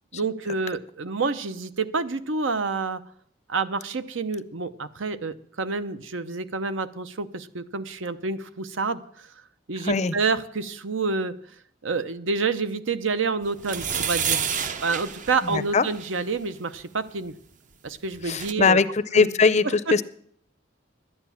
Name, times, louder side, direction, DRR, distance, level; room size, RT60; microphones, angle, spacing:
voice 1, 0.1-3.0 3.5-9.3 9.7-11.4 11.8-14.4 14.8-17.4 17.8-18.8 19.1-19.3 19.6-19.7, right 4 dB, 80° right, 12 dB, 0.8 m, -28 dB
voice 2, 9.8-10.1 15.4-15.8 18.2-20.0, left 4 dB, 35° left, 15 dB, 0.5 m, -21 dB
sound 1, 13.6-16.2 17.9-18.0 18.1-18.5, right 7 dB, 40° right, 0.6 m, -29 dB
11.5 x 9.6 x 7.1 m, 0.64 s
head